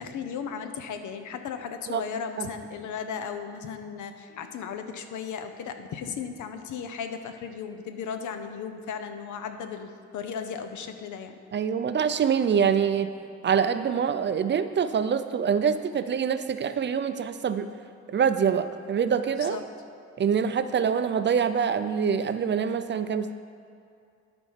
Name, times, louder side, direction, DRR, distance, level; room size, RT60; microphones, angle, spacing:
voice 1, 0.0-11.4 19.4-19.6, left 6 dB, 85° left, 8 dB, 0.7 m, -36 dB
voice 2, 11.5-13.1 13.4-17.7 18.1-19.6 20.2-23.3, right 7 dB, 40° right, 10 dB, 0.4 m, -25 dB
13.0 x 4.4 x 5.6 m, 2.4 s
cardioid pair, 120°, 29 cm